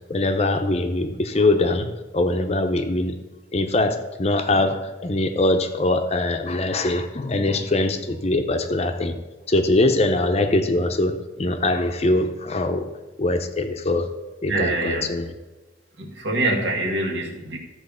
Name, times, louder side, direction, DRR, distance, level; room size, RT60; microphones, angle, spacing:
voice 1, 0.1-3.2 3.5-9.2 9.5-12.9 13.2-14.1 14.4-15.3, left 2 dB, 35° left, 7 dB, 0.7 m, -22 dB
voice 2, 14.5-15.1 16.0-17.6, right 2 dB, 75° right, -1 dB, 2.0 m, -25 dB
13.5 x 4.5 x 6.8 m, 1.2 s
head